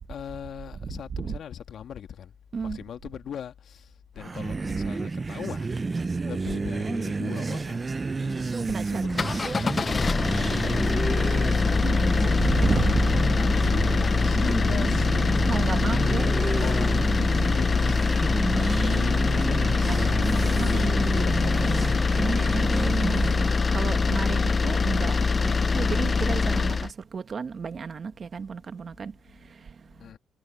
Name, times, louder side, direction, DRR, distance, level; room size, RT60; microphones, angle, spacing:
voice 1, 0.1-2.3 2.6-12.2 13.1-15.5 15.8-18.5 18.8-22.8 30.0-30.2, left 8 dB, 65° left, 1.7 m, -40 dB
sound 1, 4.2-23.7, right 4 dB, 30° right, 0.6 m, -30 dB
voice 2, 8.7-9.0 11.7-13.3 13.7-13.8 15.5-16.3 19.8-20.9 22.2-23.3 23.7-30.1, right 5 dB, 45° right, 1.2 m, -33 dB
sound 2, 9.0-26.9, left 4 dB, 30° left, 0.3 m, -24 dB
cardioid pair, 90°, 0 cm